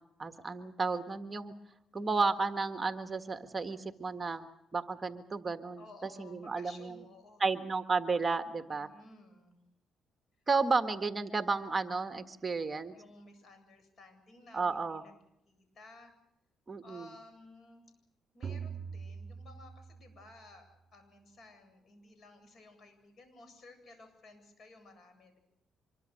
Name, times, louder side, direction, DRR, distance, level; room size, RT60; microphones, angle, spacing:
voice 1, 0.2-1.5 1.9-5.8 6.2-6.9 7.4-8.9 10.5-12.9 14.5-15.0 16.7-17.1, right 4 dB, 25° right, 8 dB, 1.6 m, -32 dB
voice 2, 5.8-7.4 8.7-9.6 12.9-15.1 15.4-16.1 16.8-17.8 18.3-25.4, left 2 dB, 50° left, 7 dB, 7.9 m, -56 dB
sound 1, 18.4-20.4, right 6 dB, 45° right, 2.3 m, -43 dB
25.5 x 22.5 x 6.6 m, 0.80 s
cardioid pair, 90°, 0 cm